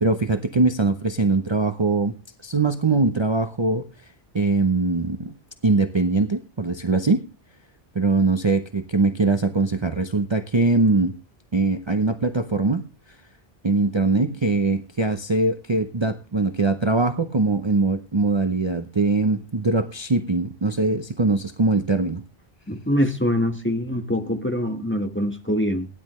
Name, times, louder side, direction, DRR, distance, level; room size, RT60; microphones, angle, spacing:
voice 1, 0.0-2.1 2.4-3.8 4.3-5.3 5.6-7.2 7.9-11.1 11.5-12.8 13.6-22.2, right 3 dB, 30° right, 0.7 m, -22 dB
voice 2, 22.7-25.9, equal, 10° left, 1.4 m, -24 dB
16.5 x 10.5 x 3.1 m
omnidirectional pair, 1.0 m